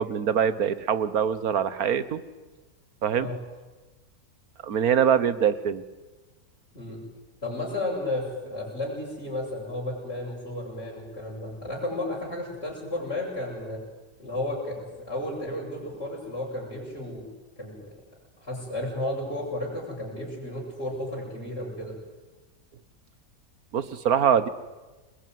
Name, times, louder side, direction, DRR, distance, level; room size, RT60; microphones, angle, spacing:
voice 1, 0.0-2.2 3.0-3.3 4.6-5.8 23.7-24.5, right 8 dB, 65° right, 14 dB, 1.7 m, -23 dB
voice 2, 7.4-13.8 14.2-17.3 17.6-17.8 18.4-22.0, left 1 dB, 40° left, -6 dB, 7.1 m, -33 dB
29.5 x 21.0 x 9.5 m, 1.2 s
omnidirectional pair, 1.7 m